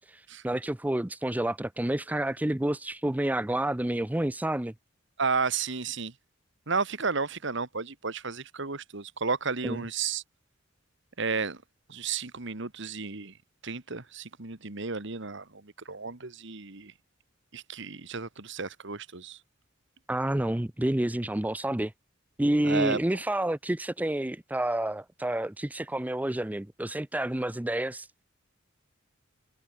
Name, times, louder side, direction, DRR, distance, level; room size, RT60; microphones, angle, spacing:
voice 1, 0.1-4.7 9.6-9.8 20.1-21.9 22.4-28.1, right 1 dB, 10° right, 0.5 m, -29 dB
voice 2, 5.2-6.1 6.7-10.2 11.2-11.6 11.9-13.3 13.6-16.9 17.5-19.4 22.6-23.0, right 4 dB, 65° right, 1.9 m, -32 dB
head